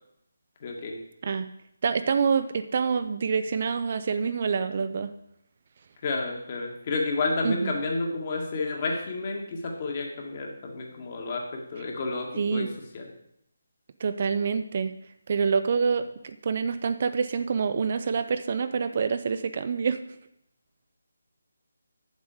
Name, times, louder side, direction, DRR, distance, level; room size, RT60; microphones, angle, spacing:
voice 1, 0.6-1.0 6.0-11.4 11.7-12.7 12.9-13.1, left 3 dB, 35° left, 1 dB, 1.8 m, -30 dB
voice 2, 1.8-5.1 7.4-7.8 12.4-12.7 14.0-14.9 15.3-20.0, right 5 dB, 40° right, 10 dB, 0.5 m, -26 dB
8.2 x 7.4 x 4.9 m, 0.78 s
figure-of-eight pair, 150°, 0 cm